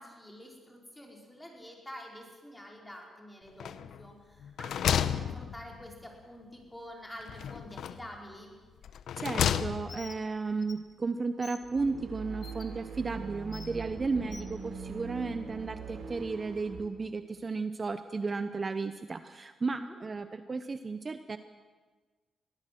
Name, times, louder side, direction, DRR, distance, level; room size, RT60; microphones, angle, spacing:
voice 1, 0.0-3.7 4.0-8.6 19.8-20.0, equal, 10° left, 0 dB, 5.0 m, -48 dB
sound 1, 3.6-4.1 4.4-6.0 7.3-8.1 8.8-10.1, left 9 dB, 80° left, 0.8 m, -32 dB
voice 2, 9.2-21.4, right 4 dB, 35° right, 10 dB, 0.8 m, -34 dB
Bird, 9.9-10.2 10.6-10.7 11.4-11.6 12.4-12.6 13.5-13.7 14.3-14.5, left 4 dB, 35° left, 2.1 m, -47 dB
sound 2, 11.6-16.8, right 5 dB, 80° right, 3.9 m, -42 dB
22.5 x 16.0 x 7.7 m, 1.4 s
cardioid pair, 105°, 0 cm